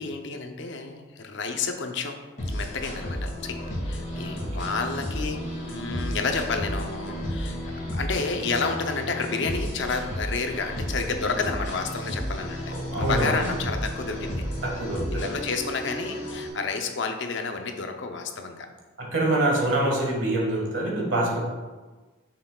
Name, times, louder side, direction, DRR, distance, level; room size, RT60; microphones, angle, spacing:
voice 1, 0.0-2.2 2.5-7.6 7.9-14.4 15.1-18.7, left 4 dB, 55° left, 5 dB, 0.7 m, -30 dB
sound 1, 2.4-16.5, equal, 35° left, 2.2 m, -32 dB
voice 2, 12.7-13.5 14.6-15.4 19.0-21.4, right 1 dB, 60° right, -1 dB, 1.8 m, -25 dB
9.1 x 6.7 x 2.4 m, 1.3 s
head